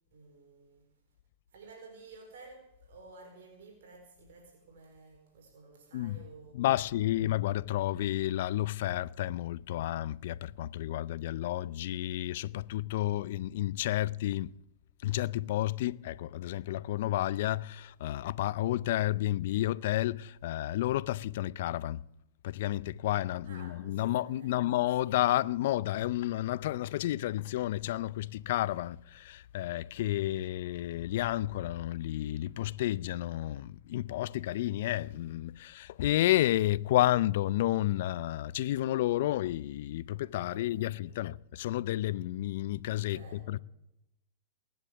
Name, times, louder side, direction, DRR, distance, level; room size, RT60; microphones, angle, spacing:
voice 1, 0.1-0.9 1.5-7.1 23.4-24.7 40.5-41.2 43.1-43.6, right 3 dB, 70° right, 4.5 m, -53 dB
voice 2, 6.5-14.5 15.0-22.0 22.4-43.6, left 14 dB, 65° left, 0.5 m, -31 dB
19.5 x 10.5 x 7.0 m
hypercardioid pair, 110°, 0 cm